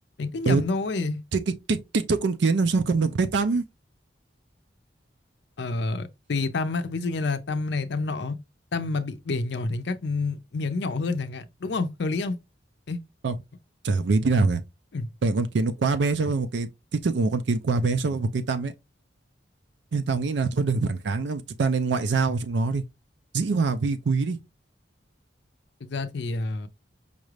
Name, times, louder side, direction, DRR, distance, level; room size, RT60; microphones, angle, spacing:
voice 1, 0.2-1.2 5.6-8.4 8.7-12.4 12.9-13.0 14.9-15.1 25.8-26.7, left 3 dB, 65° left, 0.5 m, -28 dB
voice 2, 1.7-3.6 13.2-13.3 13.8-14.6 15.2-16.7 17.0-18.7 19.9-22.8 23.3-24.4, right 4 dB, 70° right, 0.4 m, -24 dB
5.2 x 2.4 x 3.1 m
head